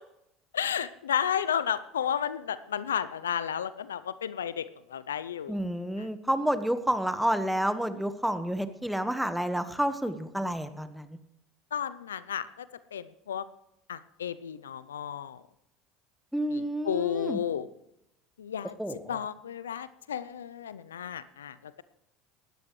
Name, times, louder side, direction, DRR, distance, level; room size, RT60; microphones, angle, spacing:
voice 1, 0.5-4.6 4.9-5.6 11.7-12.7 12.9-13.4 13.9-15.4 16.5-17.7 18.4-21.8, left 8 dB, 85° left, 16 dB, 0.5 m, -32 dB
voice 2, 5.5-11.2 16.3-17.4 18.8-19.2, right 1 dB, 5° right, 11 dB, 1.3 m, -30 dB
18.5 x 13.0 x 3.2 m, 0.81 s
hypercardioid pair, 75°, 0 cm